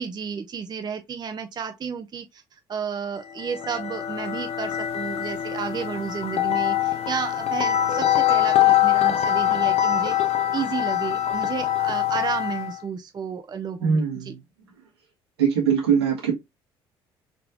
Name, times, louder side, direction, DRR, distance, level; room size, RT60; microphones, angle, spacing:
voice 1, 0.0-10.2 10.5-14.3, right 6 dB, 35° right, 0.6 m, -32 dB
sound 1, 3.3-12.8, left 11 dB, 50° left, 0.7 m, -23 dB
voice 2, 13.8-14.4 15.4-16.3, right 7 dB, 85° right, 1.6 m, -22 dB
4.2 x 3.2 x 2.9 m
figure-of-eight pair, 50°, 13 cm